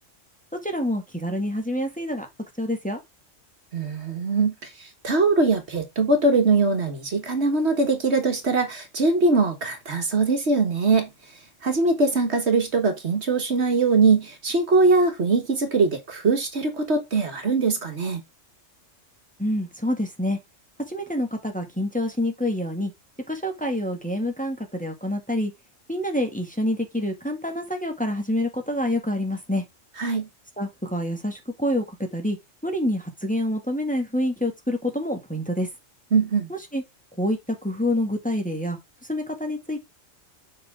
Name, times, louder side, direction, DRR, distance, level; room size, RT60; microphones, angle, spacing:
voice 1, 0.6-2.3 2.6-3.0 19.4-20.4 20.9-22.9 23.3-25.5 25.9-29.6 30.6-31.8 32.1-32.4 32.6-35.7 36.5-36.8 37.2-38.8 39.1-39.9, left 1 dB, 5° left, 1.9 m, -27 dB
voice 2, 3.7-11.1 11.6-18.2 30.0-30.3 36.1-36.5, right 3 dB, 60° right, 1.7 m, -22 dB
7.5 x 5.7 x 3.6 m
omnidirectional pair, 1.3 m